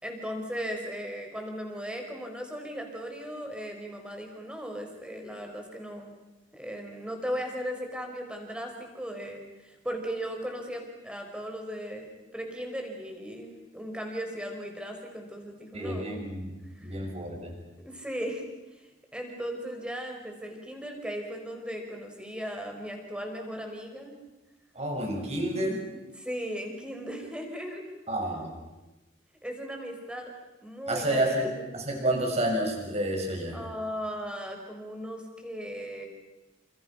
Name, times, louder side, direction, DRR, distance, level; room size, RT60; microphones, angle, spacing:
voice 1, 0.0-6.1 6.5-16.2 16.7-17.0 17.8-18.4 19.1-24.1 25.5-25.6 26.2-27.8 29.4-30.3 30.6-31.5 33.5-36.1, equal, 5° right, 3 dB, 5.2 m, -37 dB
voice 2, 15.7-16.5 16.8-17.5 24.7-25.8 28.1-28.5 30.9-33.6, right 1 dB, 35° right, 2 dB, 6.4 m, -29 dB
29.5 x 28.0 x 5.9 m, 1.0 s
head